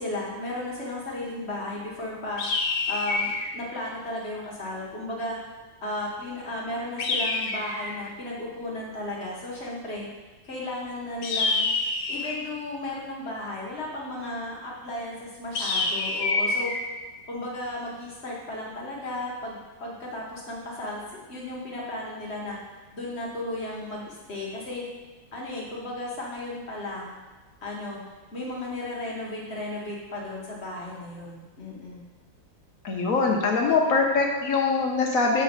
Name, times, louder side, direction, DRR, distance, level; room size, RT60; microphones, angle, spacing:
voice 1, 0.0-2.5 2.9-5.4 5.8-10.1 10.4-11.7 12.1-16.7 17.3-21.0 21.3-22.6 22.9-24.8 25.3-27.2 27.6-28.0 28.3-32.1, left 1 dB, 40° left, -4 dB, 1.1 m, -34 dB
sound 1, 2.4-3.5 7.0-8.0 11.2-12.5 15.5-16.8, left 3 dB, 90° left, 1.6 m, -27 dB
voice 2, 32.8-35.4, left 4 dB, 55° left, 0 dB, 1.0 m, -23 dB
6.5 x 4.1 x 5.1 m, 1.2 s
omnidirectional pair, 2.2 m